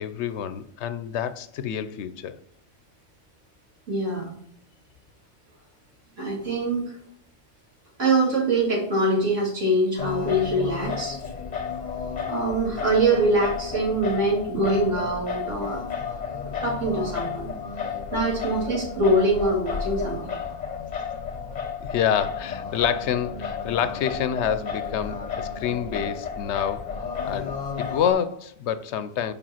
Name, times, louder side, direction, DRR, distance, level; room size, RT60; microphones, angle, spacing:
voice 1, 0.0-2.4 21.8-26.9 27.2-29.3, left 9 dB, 70° left, 0.8 m, -27 dB
voice 2, 3.9-4.3 6.2-7.0 8.0-11.2 12.3-16.0 16.6-17.5 18.1-20.3, right 1 dB, 90° right, 2.6 m, -24 dB
Singing, 10.0-28.1, left 6 dB, 40° left, 0.8 m, -32 dB
5.0 x 4.9 x 5.7 m
omnidirectional pair, 1.3 m